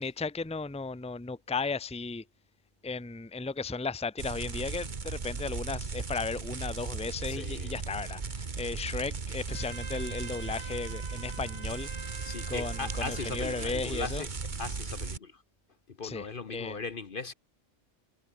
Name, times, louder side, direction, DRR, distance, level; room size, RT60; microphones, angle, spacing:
voice 1, 0.0-2.2 2.8-12.1 12.5-14.2 16.0-16.8, left 4 dB, 5° left, 0.9 m, -35 dB
sound 1, 4.2-15.2, right 4 dB, 35° right, 1.5 m, -37 dB
voice 2, 7.3-7.8 12.2-14.3 14.6-15.4 15.9-17.3, left 4 dB, 45° left, 1.1 m, -38 dB
Trumpet, 9.5-13.8, right 4 dB, 55° right, 2.4 m, -46 dB
omnidirectional pair, 1.4 m